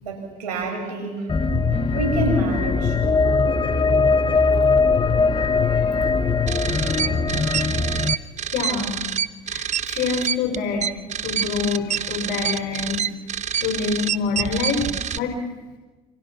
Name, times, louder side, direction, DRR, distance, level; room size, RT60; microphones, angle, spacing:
voice 1, 0.0-3.0, right 2 dB, 90° right, 3 dB, 7.6 m, -28 dB
sound 1, 1.3-8.1, left 4 dB, 25° left, 1.2 m, -20 dB
voice 2, 5.6-6.1 6.7-7.1 7.8-8.2 8.5-9.0 9.5-10.9 11.2-13.3 13.6-15.4, left 5 dB, 60° left, 2 dB, 4.9 m, -27 dB
sound 2, 6.5-15.2, right 8 dB, 35° right, 1.1 m, -27 dB
28.5 x 27.0 x 6.0 m, 1.3 s
hypercardioid pair, 80°, 20 cm